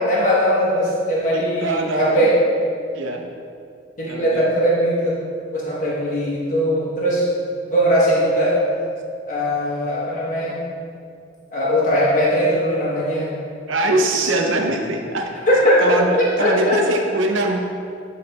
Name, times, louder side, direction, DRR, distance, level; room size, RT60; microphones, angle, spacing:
voice 1, 0.0-2.3 4.0-5.2 5.5-7.2 7.7-8.6 9.3-10.6 11.5-13.3 15.5-16.8, equal, 40° left, -7 dB, 1.2 m, -19 dB
voice 2, 1.3-2.3 2.9-3.3 4.1-4.5 13.7-15.3 15.8-17.6, right 2 dB, 90° right, 3 dB, 0.7 m, -22 dB
8.7 x 3.2 x 4.0 m, 2.4 s
head